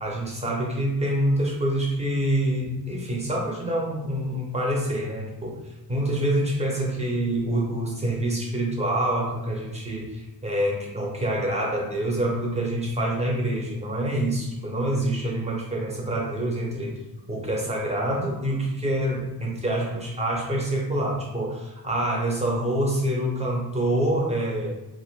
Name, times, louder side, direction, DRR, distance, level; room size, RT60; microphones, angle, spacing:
voice 1, 0.0-5.6 5.9-17.0 17.3-24.7, right 1 dB, 15° right, -3 dB, 0.8 m, -26 dB
2.5 x 2.5 x 3.1 m, 1.0 s
wide cardioid pair, 105°, 38 cm